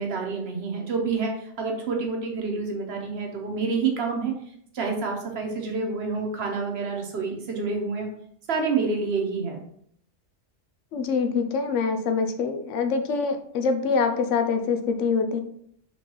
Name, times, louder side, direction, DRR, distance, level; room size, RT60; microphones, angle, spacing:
voice 1, 0.0-4.3 4.7-8.1 8.5-9.6, right 4 dB, 60° right, 1 dB, 1.2 m, -28 dB
voice 2, 10.9-15.4, left 5 dB, 80° left, 7 dB, 1.0 m, -25 dB
4.7 x 3.5 x 3.0 m, 0.67 s
omnidirectional pair, 1.3 m